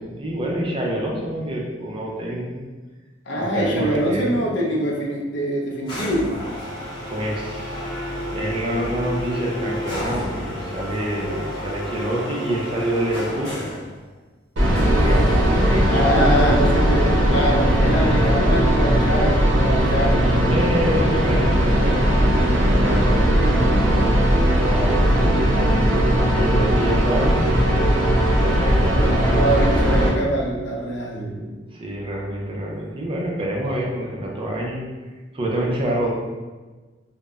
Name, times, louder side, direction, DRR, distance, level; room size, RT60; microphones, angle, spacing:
voice 1, 0.0-2.6 3.5-4.4 7.1-7.8 8.3-13.7 14.6-16.0 17.5-18.3 20.5-24.2 24.6-25.7 26.3-28.1 28.4-29.5 31.1-34.8 35.3-36.1, right 1 dB, 30° right, -2 dB, 0.4 m, -27 dB
voice 2, 3.3-6.3 15.9-20.2 29.0-31.3, right 1 dB, 65° left, -1 dB, 0.5 m, -24 dB
sound 1, 5.9-13.9 14.7-15.7, equal, 20° left, 0.9 m, -30 dB
sound 2, 14.6-30.1, equal, 75° right, 0.6 m, -18 dB
2.0 x 2.0 x 3.4 m, 1.3 s
head